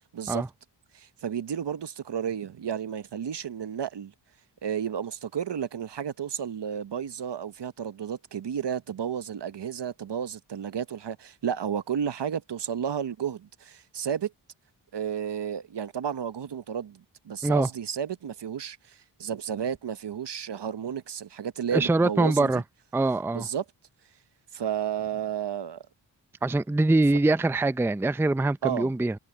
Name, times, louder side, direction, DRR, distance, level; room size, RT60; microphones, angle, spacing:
voice 1, 0.1-0.4 0.9-4.1 4.6-14.3 14.9-22.6 23.3-23.6 24.5-25.8 28.6-29.0, right 8 dB, 65° right, 1.1 m, -32 dB
voice 2, 21.7-22.6 22.9-23.5 26.4-29.2, right 2 dB, 5° right, 0.5 m, -23 dB
cardioid pair, 45°, 46 cm